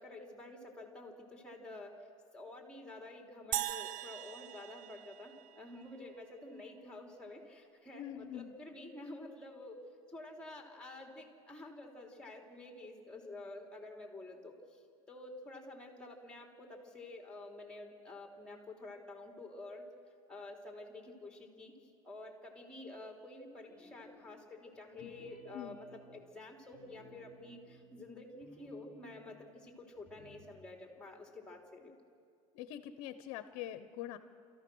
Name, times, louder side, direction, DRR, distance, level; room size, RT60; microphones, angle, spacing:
voice 1, 0.0-2.1 2.3-14.8 15.1-19.8 20.3-21.8 22.0-31.9, left 2 dB, 5° left, 1 dB, 3.6 m, -49 dB
sound 1, 3.5-6.0, right 14 dB, 50° right, 0.6 m, -40 dB
voice 2, 8.0-8.5 25.0-25.1 25.5-25.8 32.5-34.2, left 11 dB, 65° left, 11 dB, 1.1 m, -44 dB
sound 2, 23.7-24.5 24.9-29.6 30.0-30.5, equal, 10° right, 4.6 m, -60 dB
29.5 x 14.5 x 6.4 m, 2.3 s
supercardioid pair, 115°, 18 cm